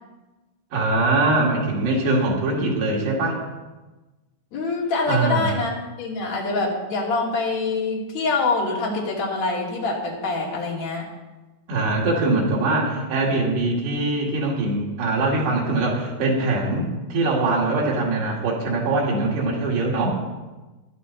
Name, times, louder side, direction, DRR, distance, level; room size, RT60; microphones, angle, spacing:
voice 1, 0.7-3.4 5.1-5.5 11.7-20.2, right 2 dB, 90° right, -3 dB, 4.6 m, -22 dB
voice 2, 4.5-11.0, left 3 dB, 45° left, -3 dB, 3.6 m, -25 dB
15.5 x 11.5 x 4.2 m, 1.1 s
omnidirectional pair, 4.6 m